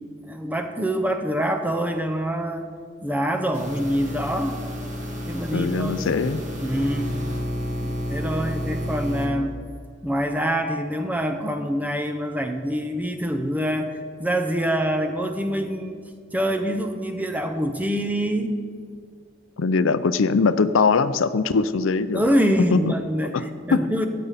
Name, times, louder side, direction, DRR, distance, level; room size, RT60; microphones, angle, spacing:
voice 1, 0.3-2.7 3.0-4.6 5.3-6.2 6.6-7.2 7.8-9.5 10.0-16.0 16.3-18.6 22.1-24.1, equal, 10° right, 6 dB, 0.7 m, -25 dB
sound 1, 3.5-9.3, equal, 40° right, 1.7 m, -30 dB
voice 2, 5.5-6.4 19.6-22.2 22.7-22.8 23.3-23.4 23.7-23.8, left 4 dB, 90° left, 13 dB, 0.5 m, -21 dB
14.0 x 9.3 x 4.1 m, 2.2 s
head